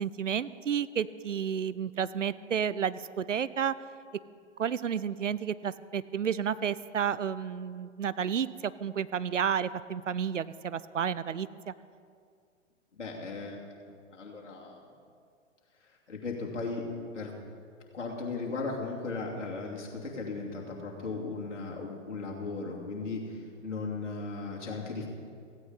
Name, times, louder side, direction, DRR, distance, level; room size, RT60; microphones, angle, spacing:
voice 1, 0.0-3.7 4.6-11.7, right 8 dB, 80° right, 16 dB, 0.6 m, -31 dB
voice 2, 12.9-14.8 15.9-17.3 17.9-25.1, left 3 dB, 70° left, -1 dB, 2.9 m, -37 dB
16.0 x 15.5 x 4.2 m, 2.3 s
figure-of-eight pair, 105°, 36 cm